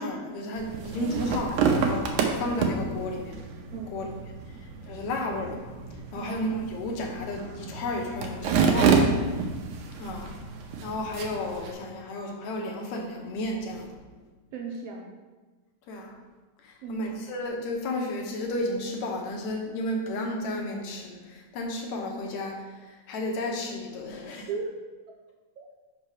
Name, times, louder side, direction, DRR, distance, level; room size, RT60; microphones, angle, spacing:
voice 1, 0.0-2.1 2.4-4.1 4.9-5.7 6.1-9.0 10.0-10.3 10.8-13.9 15.9-16.2 16.6-22.6 23.1-24.5, left 1 dB, 75° left, 1 dB, 2.2 m, -33 dB
sound 1, 0.6-11.7, right 5 dB, 90° right, 2.2 m, -28 dB
voice 2, 14.5-15.1 16.8-17.1 24.5-24.7 25.6-25.8, right 4 dB, 75° right, 0 dB, 1.6 m, -36 dB
5.9 x 5.4 x 4.8 m, 1.3 s
omnidirectional pair, 3.3 m